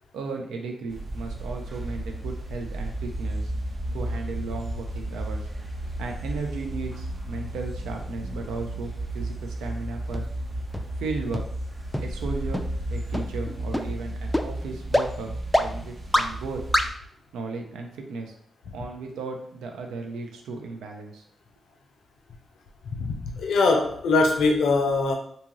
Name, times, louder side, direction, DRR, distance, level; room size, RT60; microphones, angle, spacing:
voice 1, 0.1-3.5 3.9-5.5 6.0-10.2 11.0-11.4 12.0-12.6 12.9-16.6 17.3-18.3 18.7-21.2, right 4 dB, 90° right, 3 dB, 0.4 m, -35 dB
sound 1, 0.9-16.9, right 1 dB, 40° right, 0.6 m, -33 dB
sound 2, 10.1-10.2 10.7-10.8 11.3-11.4 11.9-12.0 12.5-12.6 13.1-13.2 13.7-13.8 14.3-14.4 14.9-15.0 15.5-15.6 16.1-16.2 16.7-16.8, left 1 dB, 10° left, 0.3 m, -22 dB
voice 2, 22.8-25.2, left 3 dB, 80° left, 2 dB, 0.5 m, -22 dB
2.7 x 2.4 x 2.9 m, 0.64 s
supercardioid pair, 50°, 0 cm